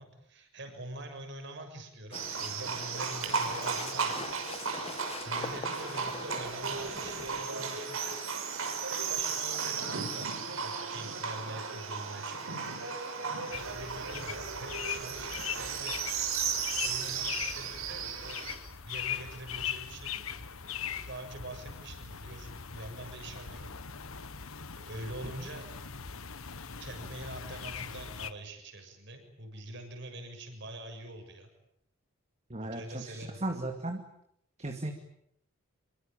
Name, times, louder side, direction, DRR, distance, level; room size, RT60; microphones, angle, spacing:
voice 1, 0.0-4.4 5.2-8.4 8.9-10.3 10.6-12.4 13.5-16.0 16.8-18.4 18.8-20.3 20.6-23.7 24.7-25.7 26.8-31.5 32.6-33.4, right 1 dB, 60° right, 6 dB, 6.9 m, -45 dB
sound 1, 2.1-7.5, left 3 dB, 30° left, 1.6 m, -44 dB
Livestock farm animals working animals, 2.1-18.6, right 5 dB, 80° right, 6.1 m, -35 dB
sound 2, 13.5-28.3, left 8 dB, 85° left, 1.5 m, -40 dB
voice 2, 32.5-34.0 34.6-34.9, right 2 dB, 30° right, 5 dB, 2.4 m, -36 dB
27.5 x 23.5 x 9.2 m, 0.74 s
head